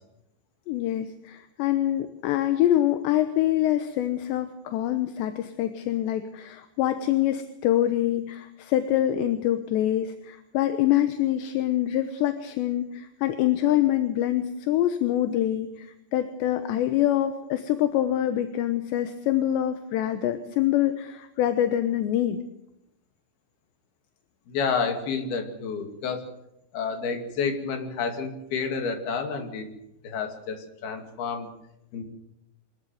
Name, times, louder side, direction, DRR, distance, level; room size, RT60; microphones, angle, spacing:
voice 1, 0.7-22.4, left 12 dB, 75° left, 9 dB, 3.2 m, -25 dB
voice 2, 24.5-26.3 26.7-29.7 30.0-31.5 31.9-32.0, left 5 dB, 60° left, 5 dB, 4.2 m, -30 dB
24.5 x 13.5 x 9.2 m, 0.85 s
omnidirectional pair, 5.3 m